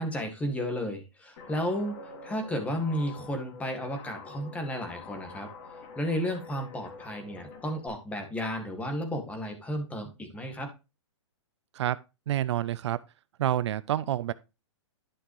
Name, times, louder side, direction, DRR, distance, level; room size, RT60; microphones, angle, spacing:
voice 1, 0.0-2.0 2.2-5.5 6.0-10.7, equal, 10° left, 1.9 m, -33 dB
Guitar, 1.4-7.9, left 3 dB, 45° left, 2.7 m, -46 dB
voice 2, 12.3-13.0 13.4-14.3, right 12 dB, 65° right, 0.5 m, -28 dB
11.5 x 5.9 x 3.2 m
hypercardioid pair, 145°, 16 cm